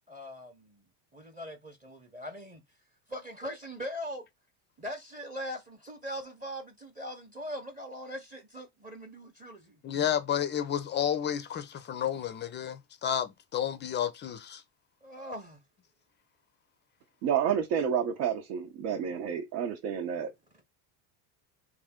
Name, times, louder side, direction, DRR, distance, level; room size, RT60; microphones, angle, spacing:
voice 1, 0.1-0.8 1.1-2.6 3.1-4.2 4.8-9.8 15.0-15.6, equal, 15° right, 0.7 m, -41 dB
voice 2, 9.8-14.6, left 9 dB, 25° left, 0.3 m, -31 dB
voice 3, 17.2-20.3, right 8 dB, 80° right, 0.9 m, -29 dB
3.2 x 2.6 x 3.6 m
supercardioid pair, 115°, 47 cm